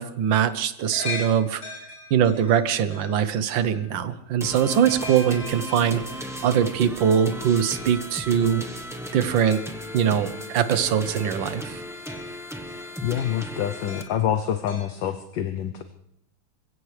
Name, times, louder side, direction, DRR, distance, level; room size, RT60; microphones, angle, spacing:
voice 1, 0.0-1.6 2.1-6.0 6.4-8.6 9.1-9.6 9.9-11.8, right 8 dB, 70° right, 12 dB, 1.6 m, -22 dB
sound 1, 0.8-4.0 4.7-6.3 7.3-8.1 8.4-9.9 10.3-10.4 11.2-11.5 12.0-14.4 14.7-14.9, left 3 dB, 85° left, 7.7 m, -40 dB
sound 2, 4.4-14.0, equal, 5° right, 0.5 m, -36 dB
voice 2, 13.0-15.8, left 10 dB, 70° left, 8 dB, 1.4 m, -26 dB
27.0 x 16.0 x 3.3 m, 0.72 s
omnidirectional pair, 2.2 m